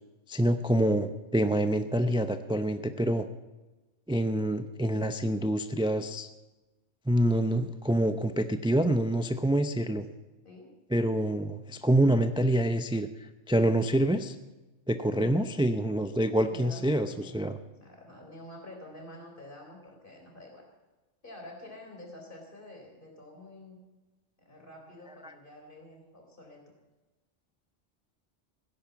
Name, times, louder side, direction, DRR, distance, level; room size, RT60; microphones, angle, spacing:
voice 1, 0.3-3.3 4.1-6.3 7.1-10.0 10.9-13.1 13.5-14.3 14.9-17.5 25.2-25.3, right 1 dB, 5° right, 9 dB, 0.4 m, -26 dB
voice 2, 16.4-16.9 17.2-17.4 17.8-20.6 21.2-23.8 24.4-26.6, left 1 dB, 45° left, 0 dB, 4.1 m, -48 dB
16.0 x 10.5 x 7.1 m, 1.1 s
omnidirectional pair, 1.2 m